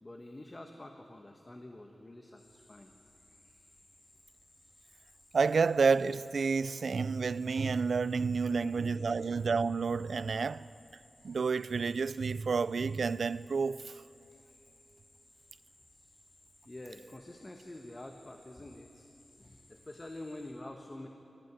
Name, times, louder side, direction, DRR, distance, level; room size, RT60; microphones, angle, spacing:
voice 1, 0.0-2.9 8.4-8.8 16.6-19.1 19.4-21.1, left 1 dB, 25° left, 1.2 m, -47 dB
sound 1, 2.4-20.5, left 1 dB, 45° left, 6.6 m, -63 dB
voice 2, 5.3-10.6 11.2-13.9, right 5 dB, 70° right, 0.4 m, -30 dB
21.0 x 14.0 x 9.5 m
wide cardioid pair, 105°, 0 cm